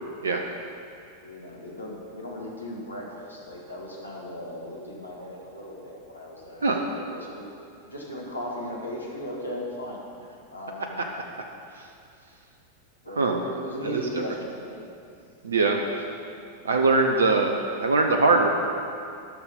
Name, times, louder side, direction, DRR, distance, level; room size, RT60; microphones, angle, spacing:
voice 1, 1.2-7.5 7.8-10.0 10.5-11.0 13.0-14.8 15.8-16.0, left 1 dB, 80° left, -2 dB, 1.7 m, -37 dB
voice 2, 13.2-13.5 13.8-14.2 15.4-16.0 16.6-18.5, right 3 dB, 70° right, 3 dB, 0.7 m, -22 dB
12.5 x 6.3 x 5.2 m, 2.4 s
figure-of-eight pair, 90°, 0 cm